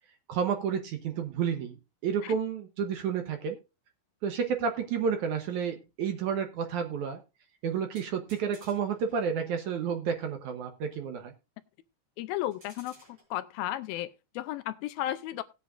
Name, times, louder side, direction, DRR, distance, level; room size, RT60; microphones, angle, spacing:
voice 1, 0.3-3.6 4.2-7.2 7.6-11.3, right 7 dB, 65° right, 2.1 m, -31 dB
sound 1, 8.0-9.4 12.5-13.2, right 1 dB, 30° right, 6.4 m, -56 dB
voice 2, 12.2-15.4, left 14 dB, 80° left, 2.5 m, -34 dB
18.5 x 8.2 x 2.5 m
omnidirectional pair, 4.3 m